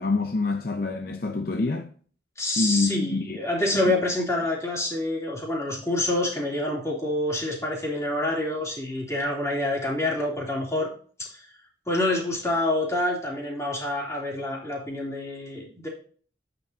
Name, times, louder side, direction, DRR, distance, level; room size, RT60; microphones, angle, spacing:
voice 1, 0.0-1.9 2.6-3.4 3.7-3.9, left 3 dB, 55° left, 0.6 m, -26 dB
voice 2, 2.4-10.9 11.2-11.5 11.9-15.9, left 1 dB, 15° left, 3.0 m, -27 dB
8.7 x 6.9 x 2.8 m
head